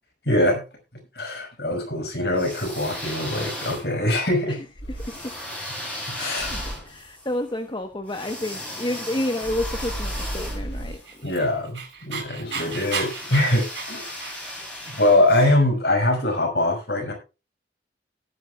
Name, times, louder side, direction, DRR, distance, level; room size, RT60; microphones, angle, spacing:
voice 1, 0.3-0.6 1.2-4.6 6.1-6.5 11.2-14.1 14.9-17.1, left 1 dB, 65° left, 3 dB, 5.7 m, -23 dB
sound 1, 2.3-4.2 5.0-11.3 12.5-15.5, left 1 dB, 10° left, 6.5 m, -36 dB
sound 2, 4.8-5.4 6.4-7.0 9.4-10.9, right 1 dB, 90° left, 4.7 m, -33 dB
voice 2, 4.9-5.3 6.1-11.0 12.5-12.7, left 1 dB, 25° left, 6 dB, 1.0 m, -30 dB
Dog, 10.9-14.7, right 5 dB, 85° right, 3.8 m, -34 dB
17.5 x 10.0 x 2.3 m, 0.30 s
head